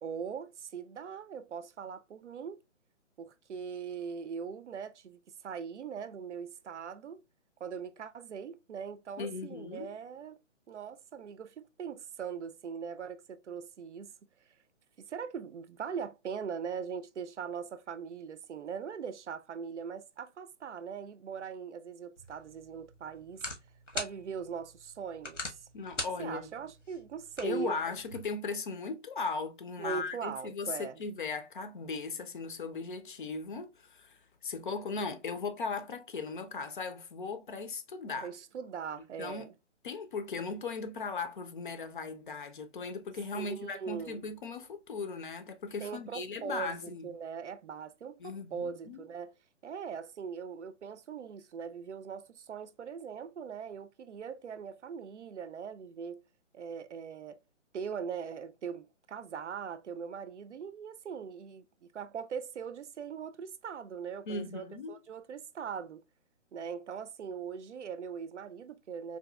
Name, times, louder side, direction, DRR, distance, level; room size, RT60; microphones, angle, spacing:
voice 1, 0.0-2.6 3.2-7.2 7.6-10.4 10.7-14.1 15.0-23.4 23.9-25.6 26.0-27.8 29.8-31.0 38.2-39.5 43.3-44.2 45.8-49.3 49.6-56.2 56.5-57.4 57.7-66.0 66.5-69.2, right 7 dB, 70° right, 0.5 m, -41 dB
voice 2, 9.2-9.9 25.7-26.5 27.4-38.3 39.2-39.5 39.8-47.1 48.2-49.0 64.3-65.0, left 4 dB, 45° left, 0.5 m, -38 dB
sound 1, 22.2-28.2, left 2 dB, 90° left, 1.3 m, -44 dB
3.8 x 2.6 x 2.2 m
figure-of-eight pair, 140°, 36 cm